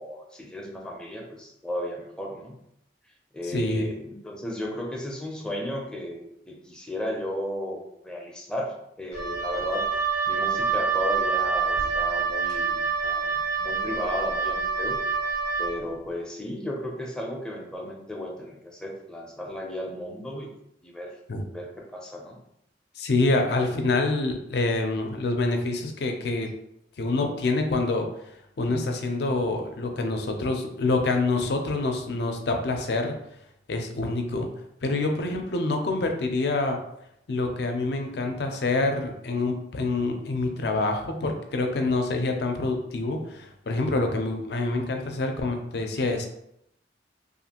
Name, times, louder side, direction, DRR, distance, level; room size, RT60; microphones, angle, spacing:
voice 1, 0.0-2.6 3.3-9.8 10.3-15.0 15.6-20.5 20.8-21.1 21.5-22.4 38.1-38.2, equal, 5° left, -1 dB, 0.5 m, -34 dB
voice 2, 3.5-3.9 21.3-21.4 23.0-26.5 27.0-28.1 28.6-33.1 33.7-34.5 34.8-36.8 37.3-46.3, left 2 dB, 65° left, 4 dB, 0.4 m, -26 dB
Wind instrument woodwind instrument, 9.1-15.8, right 5 dB, 65° right, 0.8 m, -27 dB
2.5 x 2.4 x 2.8 m, 0.77 s
head